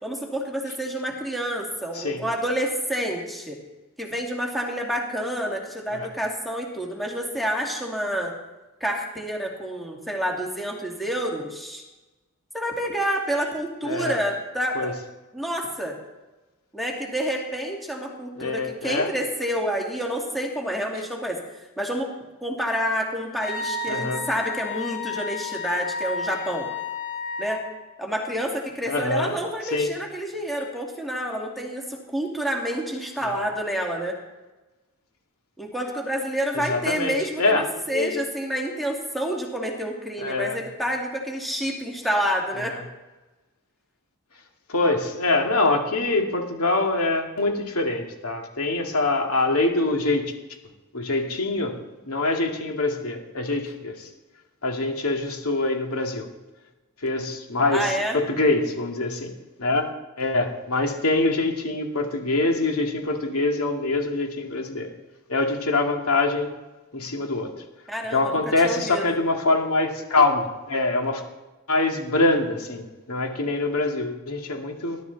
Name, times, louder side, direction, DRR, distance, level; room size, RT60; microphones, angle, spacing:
voice 1, 0.0-3.6 4.0-8.3 8.8-11.8 12.5-14.9 15.3-15.9 16.7-21.4 21.8-22.1 22.4-26.7 27.4-27.6 28.0-34.1 35.6-42.7 57.7-58.2 67.9-69.0, equal, ahead, -1 dB, 2.3 m, -28 dB
voice 2, 13.8-14.2 14.7-14.9 18.4-19.1 23.9-24.2 28.9-29.3 29.6-29.9 33.2-33.5 36.5-38.3 40.2-40.6 42.6-42.8 44.7-50.3 50.9-51.7 52.1-54.1 54.6-56.3 57.0-59.3 59.6-59.9 60.2-64.9 65.3-66.5 66.9-67.5 68.1-71.2 71.7-72.8 73.1-75.0, left 2 dB, 85° left, 2 dB, 2.4 m, -24 dB
Wind instrument woodwind instrument, 23.4-27.7, left 4 dB, 55° left, 6.7 m, -32 dB
20.0 x 12.0 x 4.1 m, 1.1 s
head